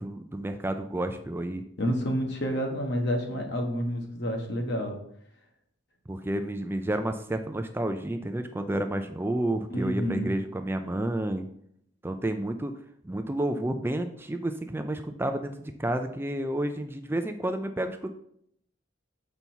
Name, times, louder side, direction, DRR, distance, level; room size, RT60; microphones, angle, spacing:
voice 1, 0.0-1.6 6.1-11.5 12.0-12.7 13.0-18.1, right 1 dB, 10° right, 7 dB, 0.4 m, -30 dB
voice 2, 1.8-5.0 9.7-10.3, equal, 60° left, 2 dB, 1.5 m, -29 dB
6.8 x 5.5 x 4.6 m, 0.70 s
head